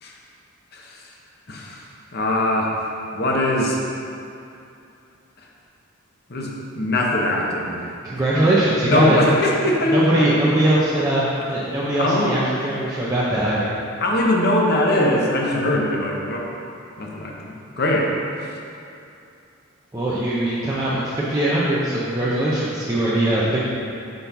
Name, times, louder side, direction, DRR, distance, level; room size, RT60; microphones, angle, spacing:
voice 1, 0.7-1.0 1.5-1.8 2.1-2.7 3.1-3.8 6.3-7.8 8.9-10.4 12.0-12.4 14.0-16.5 17.0-18.2, left 1 dB, 50° left, -1 dB, 0.8 m, -21 dB
voice 2, 8.0-9.2 9.9-13.7 19.9-23.6, right 1 dB, 15° right, -8 dB, 0.6 m, -21 dB
5.3 x 4.2 x 5.8 m, 2.6 s
head